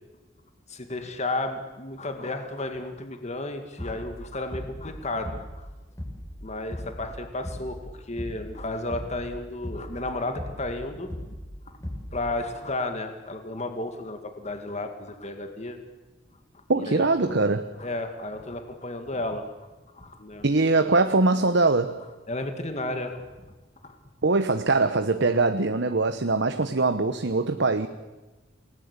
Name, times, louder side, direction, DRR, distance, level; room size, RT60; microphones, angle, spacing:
voice 1, 0.7-5.7 6.4-11.1 11.7-11.8 12.1-15.8 16.5-17.5 17.8-19.4 19.9-20.5 22.3-23.2 23.8-24.0, left 2 dB, 35° left, 2.0 m, -33 dB
sound 1, 3.8-4.2 4.5-4.9 5.2-5.6 6.0-6.4 6.7-7.1 7.4-7.8 8.2-8.6 8.9-9.3 9.6-10.0 10.4-10.7 11.1-11.5 11.8-12.2, left 1 dB, 15° left, 4.9 m, -37 dB
voice 2, 16.7-17.6 20.4-22.0 24.2-27.9, right 3 dB, 65° right, 1.1 m, -22 dB
28.5 x 19.0 x 8.2 m
head